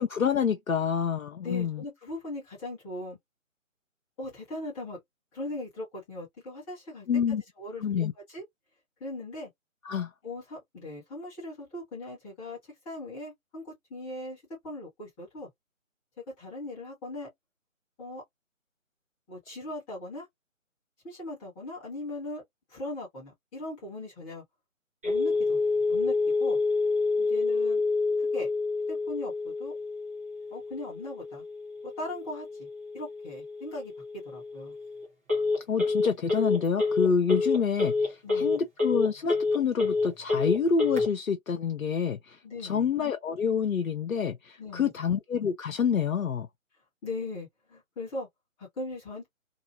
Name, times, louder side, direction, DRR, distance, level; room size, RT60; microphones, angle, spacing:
voice 1, 0.0-1.8 7.1-7.4 7.8-8.1 9.8-10.1 35.6-46.5, left 6 dB, 80° left, 0.6 m, -28 dB
voice 2, 1.4-3.2 4.2-5.0 5.3-7.1 7.6-8.4 9.0-9.5 10.2-12.6 12.8-15.5 16.4-17.3 18.0-18.2 19.3-20.3 21.0-22.4 22.7-24.4 25.0-25.6 25.9-26.1 26.4-26.6 27.2-27.8 28.2-28.5 28.9-29.8 30.5-31.4 31.8-32.7 32.9-33.9 34.2-34.7 38.2-38.6 42.4-42.9 44.6-44.9 47.0-48.3 48.6-49.3, left 2 dB, 10° left, 1.0 m, -39 dB
Telephone, 25.0-41.0, left 3 dB, 10° right, 0.7 m, -28 dB
2.8 x 2.4 x 2.6 m
figure-of-eight pair, 145°, 40 cm